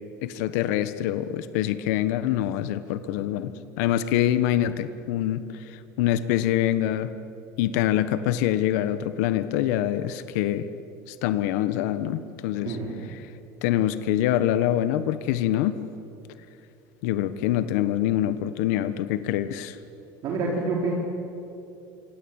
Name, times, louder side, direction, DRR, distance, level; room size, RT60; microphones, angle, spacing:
voice 1, 0.2-3.5 3.8-7.1 7.6-10.7 11.1-12.8 13.1-13.3 13.6-15.7 17.0-19.8, left 12 dB, 80° left, 12 dB, 1.3 m, -25 dB
voice 2, 12.7-13.0 20.2-21.0, right 3 dB, 45° right, -2 dB, 4.4 m, -27 dB
26.5 x 25.0 x 8.9 m, 2.8 s
cardioid pair, 145°, 9 cm